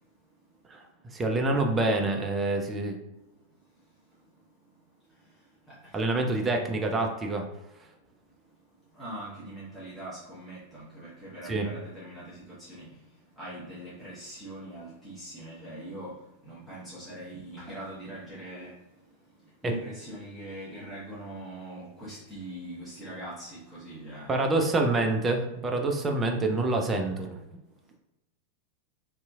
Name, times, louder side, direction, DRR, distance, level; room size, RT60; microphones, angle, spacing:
voice 1, 1.1-3.0 5.9-7.5 11.5-11.7 24.3-27.4, right 2 dB, 20° right, 2 dB, 0.5 m, -26 dB
voice 2, 5.2-6.2 8.9-13.0 13.4-18.8 19.4-24.5, right 1 dB, 5° left, -11 dB, 1.1 m, -42 dB
2.7 x 2.6 x 2.3 m, 0.97 s
figure-of-eight pair, 90°, 0 cm